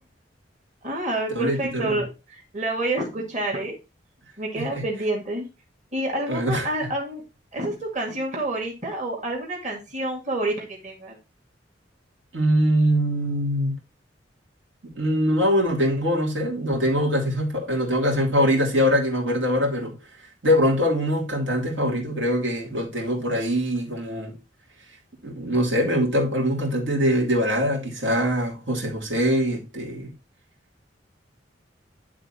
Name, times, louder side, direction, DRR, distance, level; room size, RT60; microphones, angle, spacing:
voice 1, 0.8-3.8 4.4-5.5 5.9-7.2 7.5-11.2, right 1 dB, 40° right, 2.1 m, -28 dB
voice 2, 1.3-2.0 4.6-4.8 6.3-6.7 12.3-13.7 14.8-19.9 20.4-24.3 25.2-30.1, equal, 85° right, 2.9 m, -23 dB
11.0 x 3.8 x 4.2 m
head